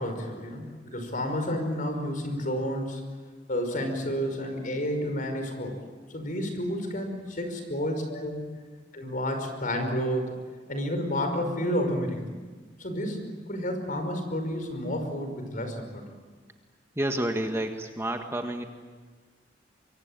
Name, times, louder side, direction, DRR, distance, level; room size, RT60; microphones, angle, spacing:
voice 1, 0.0-3.0 3.5-5.8 6.1-8.4 8.9-10.4 10.7-12.2 12.8-16.0, equal, 50° left, 6 dB, 5.4 m, -30 dB
voice 2, 16.9-18.6, right 1 dB, 15° right, 4 dB, 1.6 m, -30 dB
25.0 x 24.0 x 9.1 m, 1.4 s
head